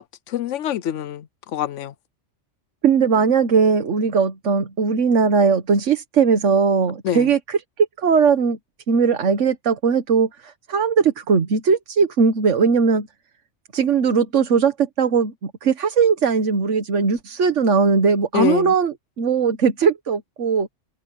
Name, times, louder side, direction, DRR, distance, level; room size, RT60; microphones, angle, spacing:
voice 1, 0.0-1.9 7.0-7.3 18.3-18.7, left 10 dB, 85° left, 1.0 m, -25 dB
voice 2, 2.8-8.6 8.9-13.1 13.7-20.7, right 5 dB, 85° right, 1.6 m, -19 dB
omnidirectional pair, 1.2 m